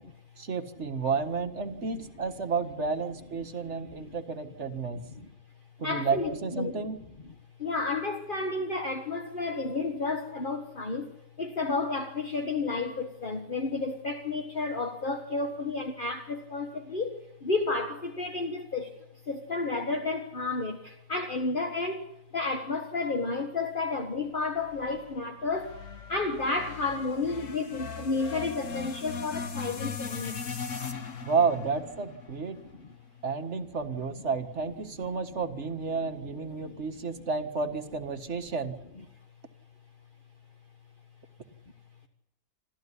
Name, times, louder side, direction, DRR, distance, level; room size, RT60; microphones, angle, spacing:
voice 1, 0.4-5.0 5.8-7.0 31.2-32.6 33.2-38.8, right 5 dB, 60° right, 1.9 m, -31 dB
voice 2, 3.6-4.2 4.9-5.3 5.8-6.8 7.6-22.1 22.3-25.8 26.1-30.4 32.7-32.8 36.0-37.2, left 3 dB, 40° left, 1.6 m, -32 dB
sound 1, 24.6-33.0, left 5 dB, 70° left, 1.8 m, -39 dB
26.5 x 14.0 x 10.0 m
omnidirectional pair, 1.4 m